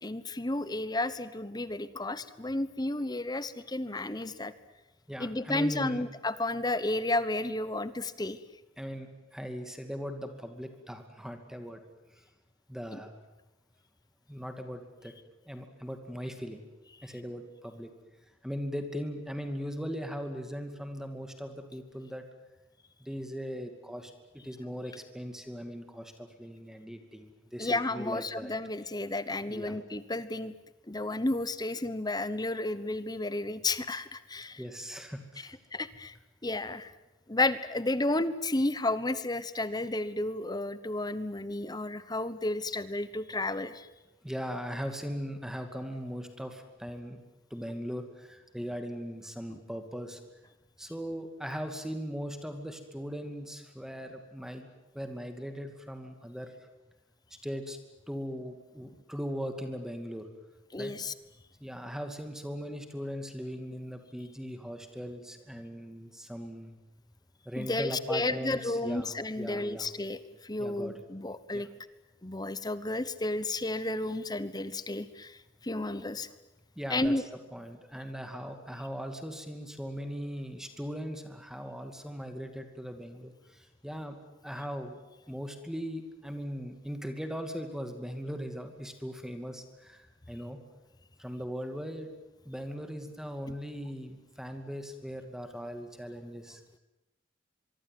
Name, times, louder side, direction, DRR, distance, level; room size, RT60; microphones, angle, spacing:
voice 1, 0.0-4.5 5.2-8.4 12.9-13.0 27.6-30.5 30.9-34.6 35.4-36.1 36.4-36.9 37.3-43.9 60.7-61.1 67.6-71.7 72.2-76.3 76.9-77.2, left 2 dB, 20° left, 15 dB, 1.1 m, -32 dB
voice 2, 5.1-6.1 8.8-11.8 12.1-12.2 12.7-13.1 14.3-15.1 15.5-16.6 17.0-17.9 18.4-22.2 23.0-28.5 29.5-29.8 34.6-35.6 44.2-47.2 47.5-50.2 50.8-54.7 54.9-56.5 57.4-57.8 58.1-60.3 60.8-60.9 61.6-66.8 67.5-69.9 70.6-71.0 71.5-71.6 76.8-77.1 77.5-84.2 84.4-85.0 85.3-90.6 91.2-92.1 92.5-96.6, equal, 5° right, 6 dB, 2.5 m, -39 dB
24.0 x 24.0 x 9.4 m, 0.99 s
head